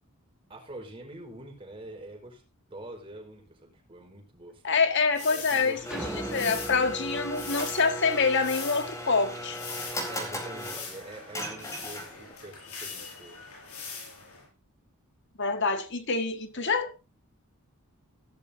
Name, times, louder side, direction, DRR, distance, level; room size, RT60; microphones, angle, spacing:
voice 1, 0.5-2.4 2.7-4.6 5.3-6.5 10.1-13.5, right 1 dB, 25° right, 4.7 m, -45 dB
voice 2, 4.6-6.0 6.3-9.6 15.4-17.0, left 4 dB, 55° left, 1.8 m, -26 dB
Sweeping in a busy street, 5.1-14.4, left 5 dB, 85° left, 7.0 m, -42 dB
Domestic sounds home sounds, 5.8-12.3, equal, 15° left, 4.2 m, -37 dB
sound 1, 5.9-8.4, equal, 5° right, 2.1 m, -41 dB
16.0 x 14.0 x 2.8 m
head